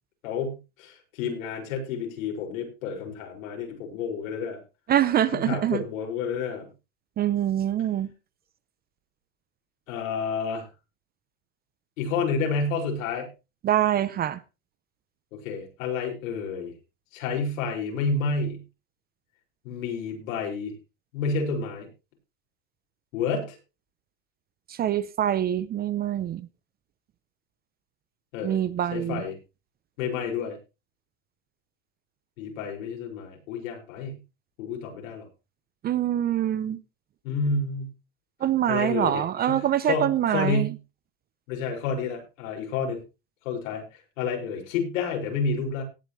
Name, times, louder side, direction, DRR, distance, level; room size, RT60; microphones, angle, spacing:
voice 1, 0.2-4.6 5.3-6.7 9.9-10.7 12.0-13.3 15.3-16.7 17.1-18.6 19.6-20.7 21.1-21.9 23.1-23.6 28.3-28.6 28.9-29.3 30.0-30.6 32.4-34.2 34.6-35.3 37.2-37.9 38.7-40.7 41.5-43.0 43.4-43.8 44.2-45.8, left 4 dB, 80° left, 5.9 m, -30 dB
voice 2, 4.9-5.8 7.2-8.1 13.6-14.4 24.7-26.4 28.4-29.2 35.8-36.8 38.4-40.7, right 11 dB, 25° right, 0.6 m, -25 dB
18.5 x 8.8 x 3.2 m
supercardioid pair, 140°, 39 cm